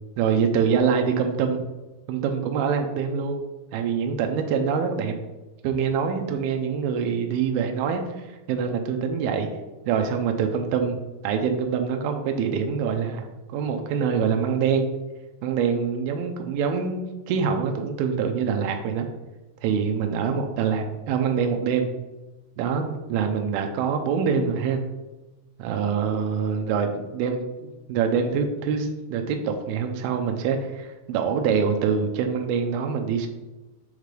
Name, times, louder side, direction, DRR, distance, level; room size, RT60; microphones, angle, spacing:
voice 1, 0.2-1.6 2.1-3.4 3.7-5.1 5.6-9.5 9.9-11.0 11.2-13.2 13.5-14.9 15.4-17.0 17.3-19.1 19.6-21.9 22.6-24.8 25.6-33.3, right 6 dB, 90° right, 5 dB, 2.5 m, -25 dB
6.5 x 5.2 x 3.2 m, 1.1 s
omnidirectional pair, 4.3 m